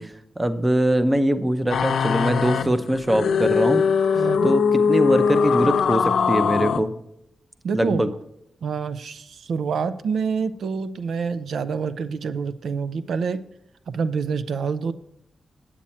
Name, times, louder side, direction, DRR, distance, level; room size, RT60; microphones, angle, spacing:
voice 1, 0.0-3.8 4.4-6.9 7.7-8.1, right 1 dB, 15° right, 10 dB, 0.6 m, -22 dB
sound 1, 1.7-6.8, left 6 dB, 85° left, 0.6 m, -21 dB
voice 2, 4.2-4.5 7.6-8.1 8.6-13.4 13.9-14.9, right 5 dB, 80° right, 13 dB, 0.4 m, -27 dB
8.7 x 8.4 x 4.3 m, 0.76 s
wide cardioid pair, 165°, 0 cm